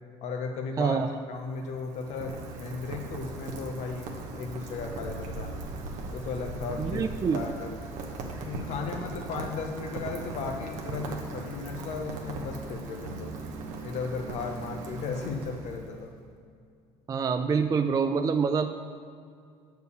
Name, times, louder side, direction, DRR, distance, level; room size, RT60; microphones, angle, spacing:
voice 1, 0.2-5.6 6.1-7.0 7.3-7.7 8.4-13.3 13.8-16.1, left 4 dB, 60° left, 3 dB, 0.8 m, -35 dB
voice 2, 0.8-1.1 6.8-7.4 17.1-18.7, right 5 dB, 25° right, 8 dB, 0.4 m, -26 dB
Rain, 1.2-16.1, right 3 dB, 70° right, 1.1 m, -39 dB
6.7 x 4.6 x 6.8 m, 2.3 s
supercardioid pair, 75°, 13 cm